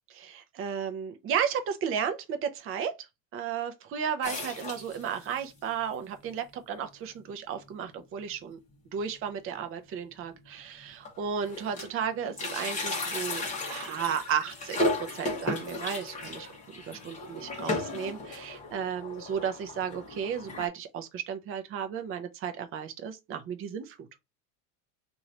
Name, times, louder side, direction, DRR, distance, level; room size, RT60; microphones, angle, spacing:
voice 1, 0.1-3.1 3.3-8.6 8.9-16.5 16.9-24.1, right 7 dB, 30° right, 0.6 m, -34 dB
sound 1, 4.2-5.4 5.9-6.0 6.2-6.3 7.2-7.3 7.7-7.9 8.2-8.3 9.6-9.7 10.4-10.5 10.8-12.0 12.3-20.7, left 2 dB, 15° left, 1.1 m, -35 dB
3.0 x 2.7 x 4.1 m
cardioid pair, 150°, 46 cm